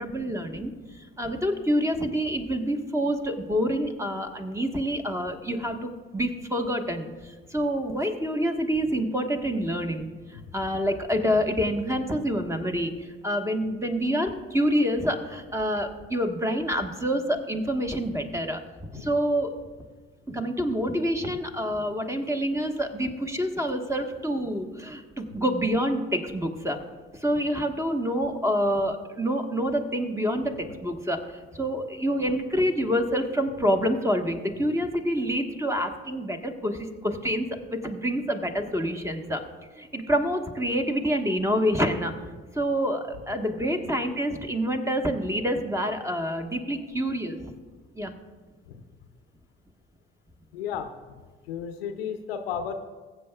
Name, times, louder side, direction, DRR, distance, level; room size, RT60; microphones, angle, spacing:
voice 1, 0.0-18.6 18.9-19.5 20.3-26.8 27.1-39.4 39.8-42.1 42.5-47.5 47.9-48.1, equal, 10° right, 5 dB, 1.3 m, -27 dB
voice 2, 50.5-51.1 51.5-52.7, left 7 dB, 80° left, 8 dB, 0.7 m, -34 dB
21.5 x 7.8 x 2.3 m, 1.4 s
figure-of-eight pair, 50°, 30 cm